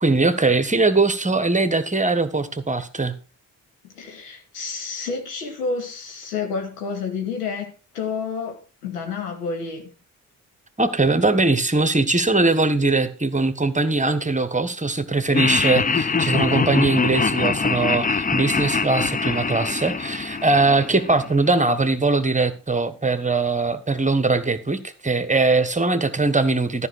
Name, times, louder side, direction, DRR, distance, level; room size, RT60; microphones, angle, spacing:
voice 1, 0.0-3.1 10.8-26.9, right 3 dB, 15° right, 1.4 m, -21 dB
voice 2, 3.8-9.9 16.6-16.9, left 5 dB, 85° left, 2.3 m, -30 dB
Laughter, 15.3-21.5, left 4 dB, 20° left, 0.7 m, -23 dB
13.5 x 5.8 x 6.3 m
hypercardioid pair, 45°, 45 cm